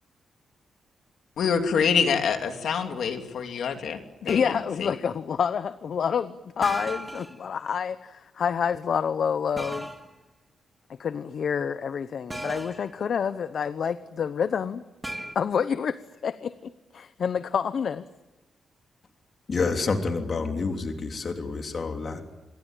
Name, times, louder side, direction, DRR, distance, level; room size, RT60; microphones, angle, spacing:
voice 1, 1.4-4.9, left 6 dB, 70° left, 2.9 m, -26 dB
voice 2, 4.2-9.9 11.0-14.8 15.3-18.0, left 7 dB, 55° left, 0.9 m, -28 dB
sound 1, 4.3-4.6 6.6-7.4 9.6-10.1 12.3-12.9 15.0-15.3, right 1 dB, 10° right, 2.1 m, -35 dB
voice 3, 19.5-22.2, left 4 dB, 40° left, 3.2 m, -28 dB
27.5 x 22.5 x 9.0 m
wide cardioid pair, 150°, 0 cm